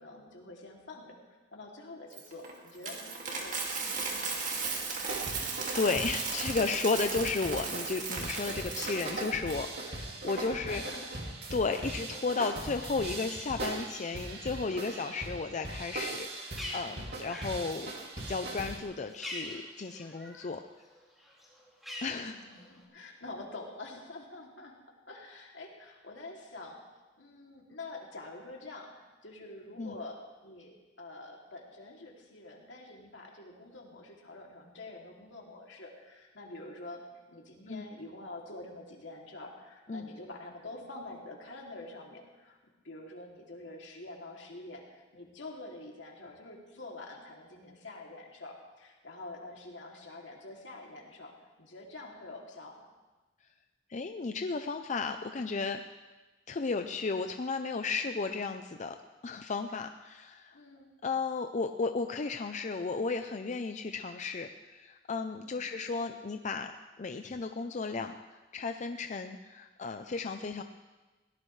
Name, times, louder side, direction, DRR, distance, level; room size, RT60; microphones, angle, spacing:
voice 1, 0.0-4.5 10.5-11.2 11.7-11.9 22.0-24.7 25.1-26.8 27.2-37.0 37.3-42.6 42.8-51.3 51.6-52.8 60.5-60.9 65.4-65.7, left 2 dB, 80° left, -1 dB, 2.8 m, -47 dB
Coin (dropping), 2.1-9.6, right 4 dB, 45° right, 2.4 m, -36 dB
sound 1, 5.1-18.8, right 2 dB, 60° right, 2.4 m, -40 dB
voice 2, 5.7-10.8 11.5-20.6 22.0-22.4 29.8-29.9 37.7-37.9 39.9-40.1 53.9-55.8 56.5-59.0 59.2-60.5 61.0-66.7 67.0-70.6, left 4 dB, 40° left, 7 dB, 0.5 m, -34 dB
Bird, 16.2-20.6 20.9-22.8, left 1 dB, ahead, 3.6 m, -44 dB
21.5 x 17.5 x 3.3 m, 1.2 s
head